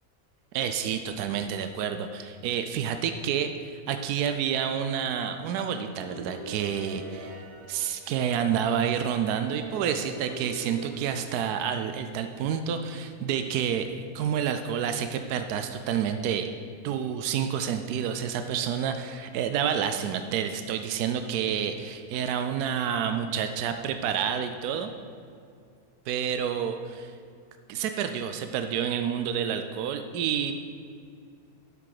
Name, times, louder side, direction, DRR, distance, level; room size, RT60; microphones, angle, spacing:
voice 1, 0.5-7.3 7.7-16.5 16.8-24.9 26.1-27.1 27.7-30.5, right 8 dB, 85° right, 8 dB, 1.1 m, -29 dB
sound 1, 5.9-8.8 9.4-12.3, right 2 dB, 35° right, 2.5 m, -44 dB
11.0 x 6.0 x 4.9 m, 2.3 s
omnidirectional pair, 1.6 m